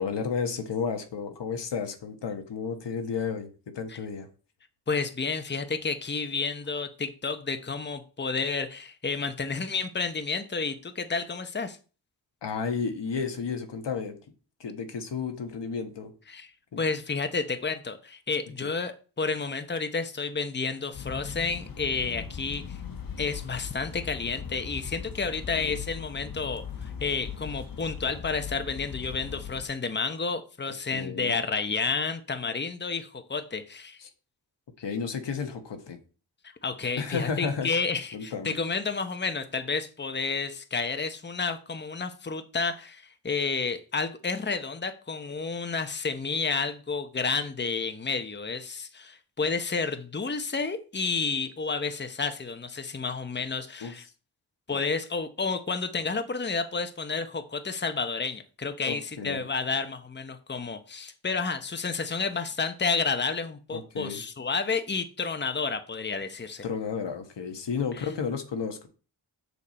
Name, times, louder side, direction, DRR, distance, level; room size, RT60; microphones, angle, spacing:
voice 1, 0.0-3.5 3.7-4.3 12.4-14.2 14.6-16.1 16.7-16.8 18.6-18.7 25.5-25.8 30.9-31.3 34.0-34.1 34.8-36.0 36.9-37.7 38.1-38.5 53.8-53.9 54.7-54.8 58.8-59.4 63.7-64.2 66.6-68.9, left 5 dB, 85° left, 6 dB, 1.5 m, -32 dB
voice 2, 4.9-11.8 16.3-16.5 16.8-22.8 23.2-34.0 36.6-54.0 54.7-66.6, left 4 dB, 25° left, 8 dB, 1.0 m, -31 dB
sound 1, 20.9-29.6, left 7 dB, 55° left, 1.3 m, -39 dB
6.9 x 6.9 x 4.3 m, 0.36 s
wide cardioid pair, 80°, 41 cm